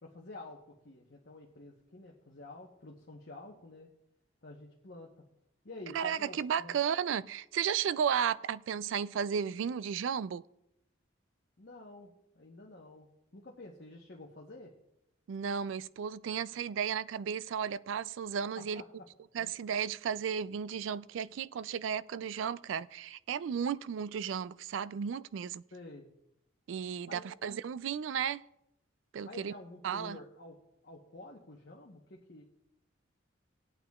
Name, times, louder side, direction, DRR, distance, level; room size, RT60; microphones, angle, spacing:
voice 1, 0.0-3.9 4.4-5.2 5.6-6.8 11.6-14.7 18.5-19.1 19.4-19.5 25.7-26.1 27.1-27.3 29.2-30.6 30.8-32.4, left 2 dB, 55° left, 1.0 m, -50 dB
voice 2, 5.9-10.4 15.3-18.8 19.3-25.6 26.7-28.4 29.1-29.5 29.8-30.2, right 7 dB, 80° right, 0.3 m, -34 dB
20.0 x 8.7 x 2.4 m
head